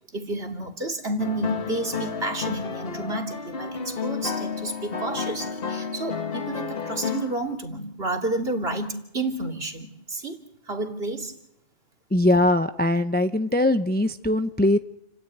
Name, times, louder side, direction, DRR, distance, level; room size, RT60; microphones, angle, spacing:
voice 1, 0.1-10.4 10.7-11.3, right 2 dB, 55° right, 2 dB, 3.1 m, -30 dB
sound 1, 1.2-7.5, left 6 dB, 50° left, 1.7 m, -31 dB
voice 2, 12.1-14.8, left 1 dB, 10° left, 8 dB, 0.7 m, -21 dB
29.0 x 13.0 x 9.3 m, 0.82 s
omnidirectional pair, 1.2 m